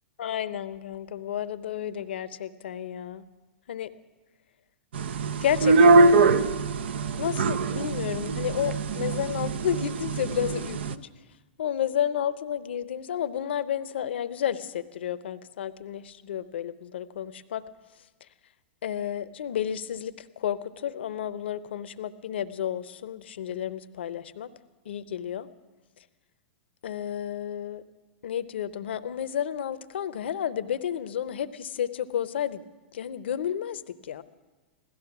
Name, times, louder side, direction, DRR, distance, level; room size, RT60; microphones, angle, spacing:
voice 1, 0.2-3.2 3.7-3.9 5.4-6.4 7.2-11.1 11.6-17.6 18.8-24.5 24.9-25.5 26.8-27.8 28.2-32.6 32.9-34.2, left 10 dB, 75° left, 14 dB, 0.7 m, -31 dB
sound 1, 4.9-10.9, right 3 dB, 70° right, 0.6 m, -23 dB
16.5 x 13.5 x 5.9 m, 1.2 s
hypercardioid pair, 115°, 6 cm